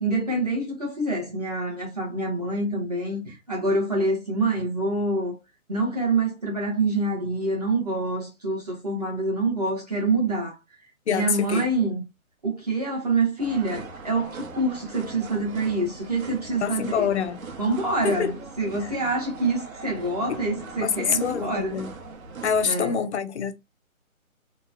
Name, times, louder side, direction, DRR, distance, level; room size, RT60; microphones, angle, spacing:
voice 1, 0.0-5.4 5.7-10.6 11.1-12.0 12.4-17.1 17.6-18.3 18.6-21.8 22.6-22.9, right 2 dB, 30° right, 0.7 m, -26 dB
voice 2, 11.1-11.7 16.6-17.5 18.0-18.4 18.8-18.9 20.3-20.4 20.8-21.9 22.4-23.5, left 7 dB, 55° left, 0.4 m, -26 dB
sound 1, 13.4-22.6, right 4 dB, 75° right, 0.9 m, -40 dB
2.9 x 2.1 x 2.4 m
hypercardioid pair, 165°, 42 cm